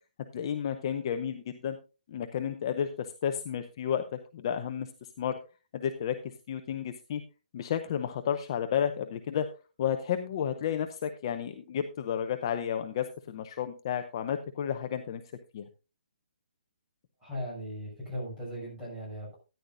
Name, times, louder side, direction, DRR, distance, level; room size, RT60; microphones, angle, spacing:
voice 1, 0.3-1.8 2.1-4.9 5.2-5.4 5.7-7.2 7.5-9.5 9.8-15.2 15.5-15.7, left 8 dB, 30° left, 7 dB, 0.7 m, -32 dB
voice 2, 17.2-19.4, equal, 10° right, -6 dB, 6.7 m, -38 dB
13.5 x 10.5 x 2.6 m, 0.30 s
hypercardioid pair, 170°, 5 cm